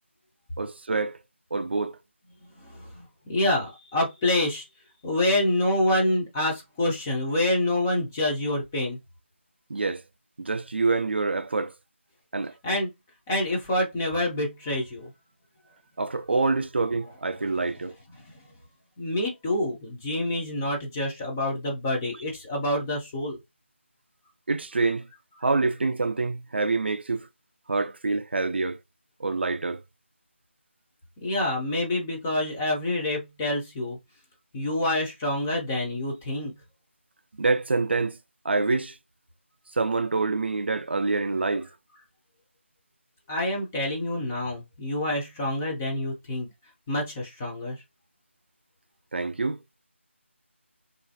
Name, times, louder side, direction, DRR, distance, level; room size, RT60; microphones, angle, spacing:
voice 1, 0.6-1.2 1.5-2.0 9.7-10.0 10.4-11.7 12.3-12.5 16.0-18.0 24.5-25.1 25.4-27.3 27.7-28.8 29.2-29.8 37.4-38.2 38.4-39.0 39.8-41.7 49.1-49.6, right 3 dB, 55° right, 0.4 m, -26 dB
voice 2, 2.6-4.6 5.0-9.0 12.6-12.9 13.3-15.1 18.2-18.3 19.0-23.4 31.2-34.0 34.5-36.5 43.3-46.5 46.9-47.8, left 1 dB, 10° left, 0.4 m, -27 dB
3.0 x 2.5 x 2.6 m
figure-of-eight pair, 165°, 7 cm